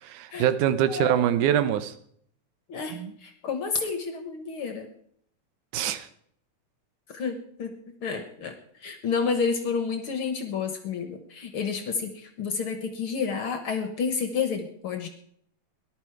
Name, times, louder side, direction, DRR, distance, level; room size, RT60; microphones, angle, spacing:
voice 1, 0.0-1.9 2.9-3.1 5.7-6.1, right 10 dB, 85° right, 12 dB, 2.3 m, -24 dB
voice 2, 2.7-4.9 7.1-7.7 8.0-8.5 8.8-15.1, left 5 dB, 55° left, 7 dB, 1.7 m, -30 dB
18.5 x 11.5 x 4.7 m, 0.65 s
omnidirectional pair, 3.5 m